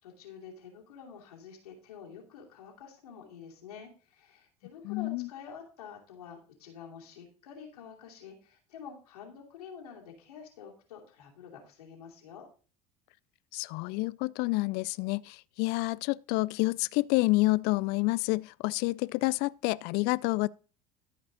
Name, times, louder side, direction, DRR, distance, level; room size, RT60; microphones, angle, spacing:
voice 1, 0.0-12.5, left 7 dB, 85° left, 2.7 m, -48 dB
voice 2, 4.8-5.3 13.5-20.5, left 23 dB, 60° left, 0.4 m, -28 dB
13.5 x 5.2 x 3.9 m
hypercardioid pair, 80°, 19 cm